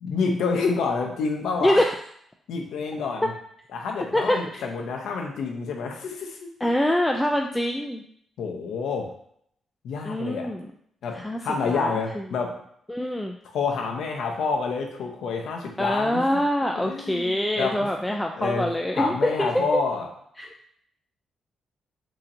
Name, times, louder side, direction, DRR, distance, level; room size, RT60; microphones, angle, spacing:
voice 1, 0.0-1.8 2.5-3.3 3.7-6.5 8.4-9.1 9.8-10.5 11.0-12.6 13.5-16.4 16.8-17.8 18.4-18.7 18.9-20.1, left 4 dB, 80° left, 2 dB, 0.6 m, -28 dB
voice 2, 1.6-1.9 4.1-4.7 6.6-8.0 10.0-10.7 11.1-11.4 11.6-12.2 12.9-13.4 15.8-19.8 20.4-20.5, equal, 10° left, 2 dB, 0.3 m, -25 dB
4.1 x 2.8 x 2.6 m, 0.68 s
cardioid pair, 70°, 0 cm